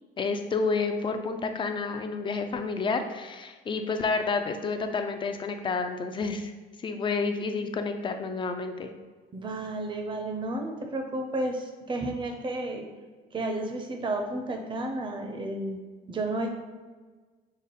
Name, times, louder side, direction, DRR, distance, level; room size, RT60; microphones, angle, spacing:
voice 1, 0.2-6.5 6.8-8.9, left 4 dB, 30° left, 7 dB, 0.4 m, -30 dB
voice 2, 9.3-12.9 13.3-15.8 16.1-16.5, right 2 dB, 30° right, 4 dB, 0.6 m, -32 dB
5.1 x 2.0 x 4.0 m, 1.4 s
cardioid pair, 110°, 17 cm